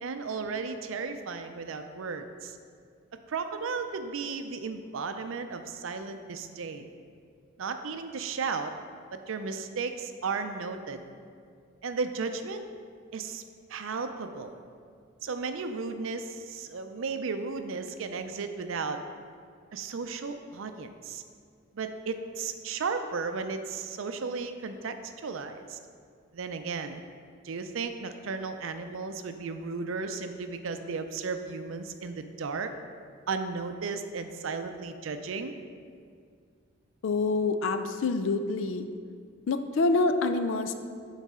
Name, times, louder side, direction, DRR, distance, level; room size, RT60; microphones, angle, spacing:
voice 1, 0.0-2.6 3.3-6.9 7.6-8.7 9.1-11.0 11.8-12.6 13.1-13.4 13.7-14.6 15.2-19.0 19.7-21.2 21.7-25.0 25.2-25.8 26.3-27.0 27.4-32.7 33.3-35.5, right 4 dB, 75° right, 8 dB, 0.5 m, -34 dB
voice 2, 37.0-38.9 39.5-40.7, left 3 dB, 70° left, 9 dB, 0.4 m, -26 dB
9.6 x 4.0 x 3.6 m, 2.2 s
head